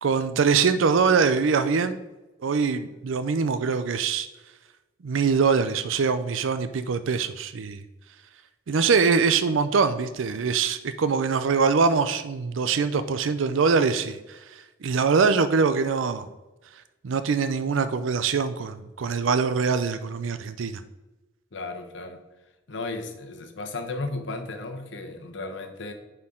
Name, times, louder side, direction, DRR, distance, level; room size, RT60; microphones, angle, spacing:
voice 1, 0.0-2.0 2.4-4.3 5.0-7.8 8.7-14.4 14.8-16.3 17.0-20.8, right 5 dB, 80° right, 11 dB, 0.5 m, -23 dB
voice 2, 21.5-22.2 22.7-25.9, left 3 dB, 65° left, 6 dB, 0.9 m, -34 dB
9.5 x 4.5 x 3.7 m, 1.1 s
head